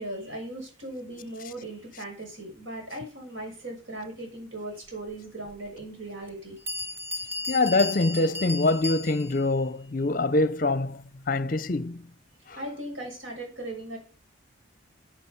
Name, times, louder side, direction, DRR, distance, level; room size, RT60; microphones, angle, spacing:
voice 1, 0.0-6.6 12.5-14.0, right 1 dB, 70° right, 6.2 m, -38 dB
Bell, 5.5-5.6 6.3-6.4 6.7-9.5, left 2 dB, 10° right, 1.0 m, -34 dB
voice 2, 7.5-12.1 12.5-12.6, left 2 dB, 40° left, 0.6 m, -25 dB
10.0 x 9.0 x 7.1 m
head